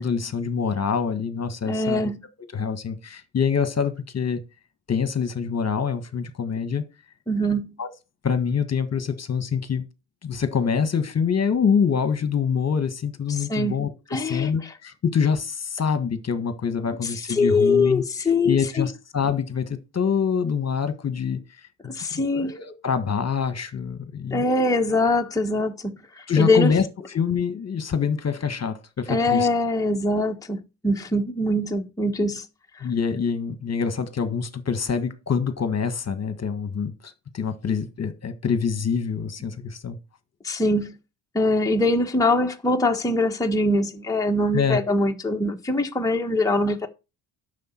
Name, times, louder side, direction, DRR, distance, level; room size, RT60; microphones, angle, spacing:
voice 1, 0.0-2.1 2.5-4.4 4.9-6.8 7.8-7.9 8.2-9.8 10.2-18.0 18.4-21.4 21.8-21.9 22.3-24.4 24.9-25.1 26.3-29.5 32.8-40.0 44.5-44.9, left 6 dB, 35° left, 1.5 m, -25 dB
voice 2, 1.7-2.2 7.3-7.7 13.3-13.8 14.1-14.7 17.0-18.9 21.8-22.6 24.3-26.7 29.1-32.4 32.7-32.9 40.4-41.0 41.3-46.9, left 2 dB, 10° left, 1.3 m, -23 dB
9.4 x 6.8 x 4.4 m
cardioid pair, 75°, 43 cm